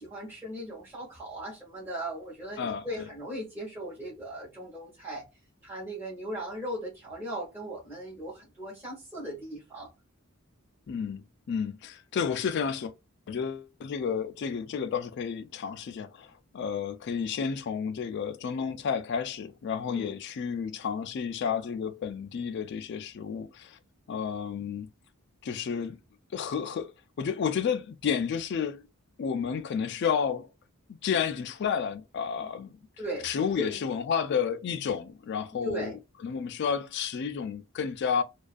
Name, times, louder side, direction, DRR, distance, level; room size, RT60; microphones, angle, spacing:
voice 1, 0.0-5.2 5.6-9.9 19.9-20.2 32.4-32.5 33.0-33.3 33.6-33.8 35.6-35.9, right 1 dB, 10° right, 0.9 m, -38 dB
voice 2, 2.6-3.1 10.9-12.9 13.3-16.3 16.5-23.8 24.1-24.9 25.4-26.0 26.3-26.9 27.2-28.8 29.2-30.5 30.9-32.7 33.2-35.9 36.2-38.2, left 7 dB, 55° left, 0.3 m, -31 dB
2.3 x 2.3 x 2.4 m
head